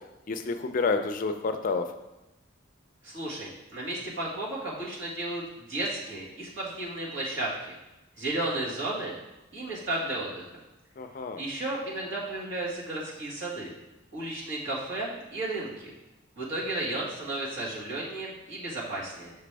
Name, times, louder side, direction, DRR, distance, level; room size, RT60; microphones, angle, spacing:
voice 1, 0.3-1.8 11.0-11.4, left 4 dB, 40° left, 8 dB, 0.4 m, -29 dB
voice 2, 3.0-7.7 8.2-9.2 9.5-10.5 11.4-13.7 14.1-15.9 16.4-19.3, right 2 dB, 65° right, -6 dB, 1.9 m, -33 dB
6.6 x 5.0 x 3.4 m, 0.97 s
head